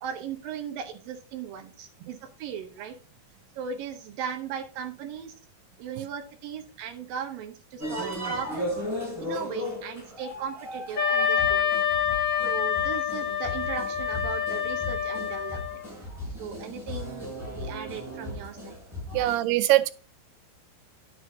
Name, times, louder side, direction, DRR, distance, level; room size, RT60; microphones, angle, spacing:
voice 1, 0.0-2.9 3.6-5.3 5.8-8.7 9.2-11.7 12.4-15.8 16.4-18.8 19.1-19.3, right 7 dB, 70° right, 2.6 m, -37 dB
sound 1, 7.8-19.4, left 1 dB, 5° right, 3.9 m, -36 dB
Wind instrument woodwind instrument, 11.0-15.8, left 8 dB, 50° left, 4.7 m, -27 dB
voice 2, 19.1-19.9, right 16 dB, 90° right, 2.7 m, -22 dB
11.0 x 7.9 x 2.7 m
omnidirectional pair, 4.5 m